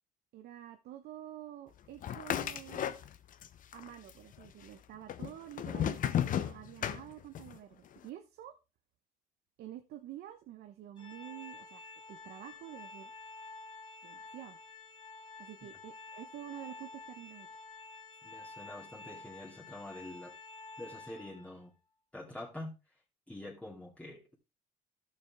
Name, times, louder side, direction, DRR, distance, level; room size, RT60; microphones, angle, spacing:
voice 1, 0.3-2.9 3.7-8.5 9.6-11.8 12.1-13.1 14.0-14.6 15.4-17.5, right 12 dB, 70° right, 7 dB, 1.0 m, -48 dB
sound 1, 2.0-3.5 3.7-4.5 5.1-7.6, left 10 dB, 50° left, 0.8 m, -34 dB
Organ, 11.0-21.7, left 3 dB, 25° left, 1.8 m, -50 dB
voice 2, 18.2-20.3 20.8-21.7 22.1-22.7 23.3-24.3, left 1 dB, 10° left, -5 dB, 2.4 m, -46 dB
12.0 x 7.0 x 3.5 m, 0.28 s
cardioid pair, 110°, 17 cm